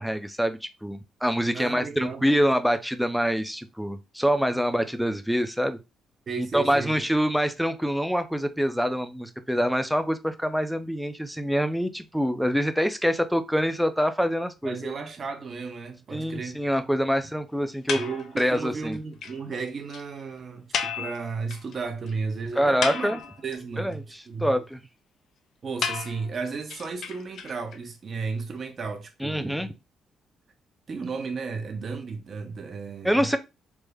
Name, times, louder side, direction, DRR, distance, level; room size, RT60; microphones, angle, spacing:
voice 1, 0.0-5.8 6.4-14.9 16.1-18.0 18.4-19.0 22.6-23.2 23.8-24.8 29.2-29.7 33.0-33.4, equal, ahead, 0.4 m, -25 dB
voice 2, 1.5-2.3 6.3-6.9 14.6-16.6 17.9-24.6 25.6-29.7 30.9-33.2, right 4 dB, 45° right, 0.6 m, -34 dB
sound 1, 17.9-18.6 18.9-19.0 19.2-19.3 19.6-19.7 19.9-20.0 20.7-21.7 22.1-22.2 22.6-23.6 25.8-27.8, left 6 dB, 65° left, 0.4 m, -32 dB
3.4 x 2.1 x 3.3 m
cardioid pair, 90°, 0 cm